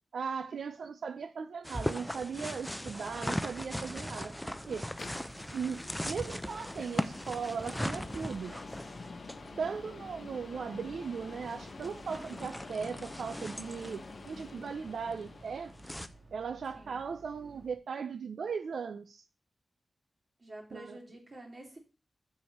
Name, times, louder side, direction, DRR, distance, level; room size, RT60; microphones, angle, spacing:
voice 1, 0.1-4.9 5.5-8.6 9.6-15.7 16.3-19.2 20.7-21.0, right 6 dB, 85° right, 0.5 m, -38 dB
sound 1, 1.6-16.1, equal, 5° left, 0.6 m, -39 dB
Boat Water vehicle, 3.1-17.8, right 2 dB, 55° right, 3.0 m, -57 dB
sound 2, 4.6-16.2, left 4 dB, 50° left, 0.8 m, -48 dB
voice 2, 9.4-9.8 16.7-17.0 20.4-21.8, right 1 dB, 35° right, 2.7 m, -49 dB
7.1 x 4.9 x 7.1 m
wide cardioid pair, 125°, 0 cm